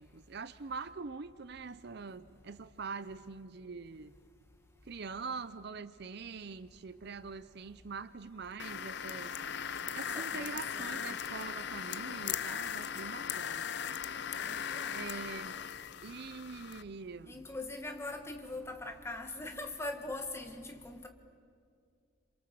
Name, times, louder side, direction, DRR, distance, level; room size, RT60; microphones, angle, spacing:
voice 1, 0.0-4.1 4.9-9.3 9.9-13.7 14.9-15.6 16.0-17.4, right 4 dB, 50° right, 0.6 m, -44 dB
sound 1, 8.6-16.8, left 8 dB, 55° left, 0.6 m, -38 dB
voice 2, 10.1-11.2 14.4-15.2 17.3-21.1, left 2 dB, 10° left, 1.7 m, -42 dB
28.0 x 26.5 x 7.7 m
head